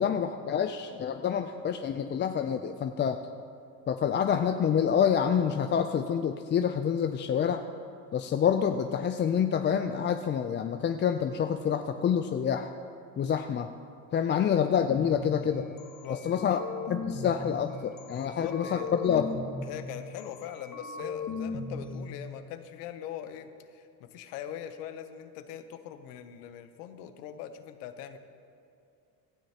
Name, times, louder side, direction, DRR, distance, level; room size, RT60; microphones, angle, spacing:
voice 1, 0.0-3.2 3.9-7.6 8.1-12.7 13.2-13.7 14.1-15.7 16.2-16.6 16.9-19.3, left 8 dB, 25° left, 7 dB, 0.4 m, -27 dB
sound 1, 14.9-15.2 15.8-17.4 18.0-19.6 20.2-21.8, left 4 dB, 45° left, 1.5 m, -38 dB
voice 2, 16.0-16.6 18.2-19.3 19.6-28.2, left 10 dB, 85° left, 10 dB, 0.9 m, -41 dB
17.0 x 12.5 x 2.9 m, 2.5 s
supercardioid pair, 85°, 46 cm